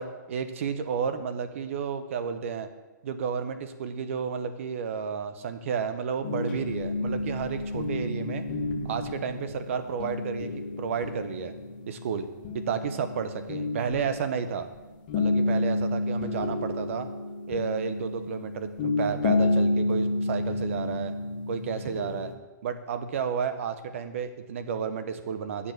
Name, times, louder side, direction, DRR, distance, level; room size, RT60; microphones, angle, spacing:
voice 1, 0.0-2.7 3.0-8.4 8.8-11.5 11.9-12.3 12.5-14.7 15.1-17.1 17.5-21.1 21.5-22.3 22.6-25.7, right 6 dB, 40° right, 10 dB, 0.9 m, -32 dB
sound 1, 6.2-14.7 15.1-22.3, left 2 dB, 30° left, 1.0 m, -30 dB
10.0 x 6.9 x 6.6 m, 1.1 s
hypercardioid pair, 175°, 11 cm